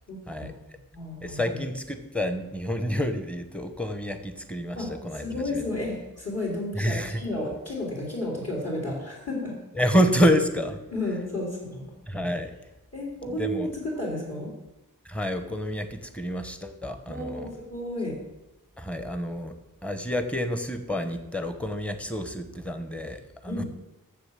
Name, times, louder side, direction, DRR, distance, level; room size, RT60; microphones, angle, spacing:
voice 1, 0.1-0.5 0.9-1.4 4.8-9.6 10.9-11.8 12.3-12.4 12.9-14.5 17.1-18.2 23.5-23.7, left 1 dB, 50° left, -5 dB, 3.8 m, -32 dB
voice 2, 1.2-4.8 5.0-5.3 5.5-5.6 6.7-7.2 9.8-10.8 12.1-12.5 13.3-13.7 15.1-17.5 18.8-19.5 19.8-23.6, equal, 5° left, 8 dB, 0.9 m, -28 dB
7.2 x 6.7 x 7.4 m, 0.98 s
wide cardioid pair, 75°, 34 cm